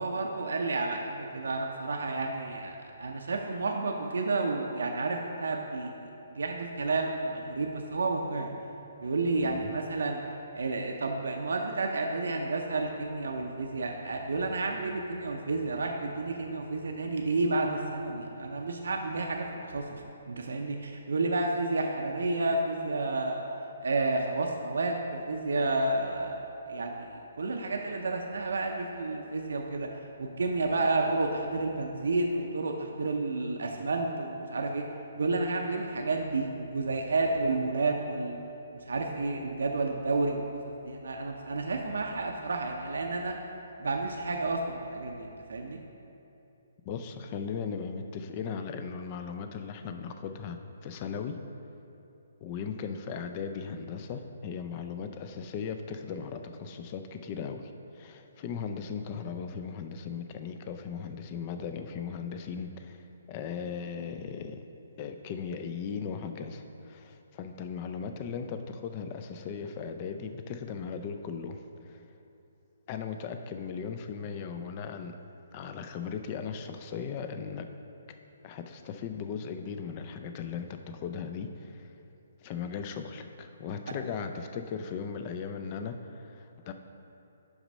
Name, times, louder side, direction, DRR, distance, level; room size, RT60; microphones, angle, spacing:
voice 1, 0.0-8.5 9.0-10.2 10.5-23.4 23.8-29.9 30.2-34.8 35.2-38.4 38.9-43.4 43.8-45.8, right 3 dB, 85° right, 2 dB, 0.6 m, -31 dB
voice 2, 9.4-9.7 46.8-51.4 52.4-64.6 65.0-72.0 72.9-75.2 75.5-77.7 78.4-81.9 82.4-86.7, left 6 dB, 25° left, 7 dB, 0.4 m, -37 dB
6.0 x 5.0 x 5.4 m, 2.8 s
hypercardioid pair, 165°, 0 cm